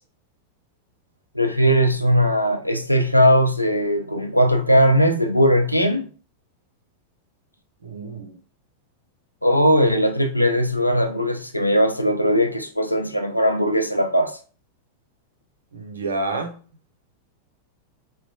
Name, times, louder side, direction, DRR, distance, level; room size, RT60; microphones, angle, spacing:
voice 1, 1.3-6.1 9.4-14.4, equal, 90° left, 0.4 m, -19 dB
voice 2, 7.8-8.4 15.7-16.6, right 2 dB, 70° right, 0.5 m, -29 dB
3.9 x 2.1 x 2.6 m
figure-of-eight pair, 90°, 0 cm